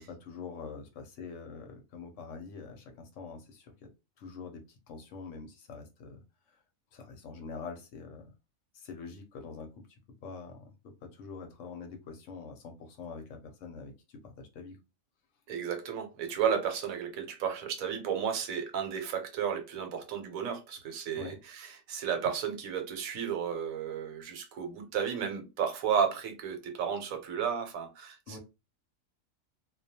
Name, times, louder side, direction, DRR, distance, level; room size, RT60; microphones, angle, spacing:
voice 1, 0.0-3.9 4.2-6.2 6.5-6.6 6.9-8.3 8.7-9.9 10.2-14.8 21.2-21.4 28.3-28.4, left 4 dB, 70° left, 0.9 m, -45 dB
voice 2, 15.5-28.4, right 7 dB, 80° right, 1.1 m, -33 dB
2.3 x 2.2 x 2.7 m
omnidirectional pair, 1.4 m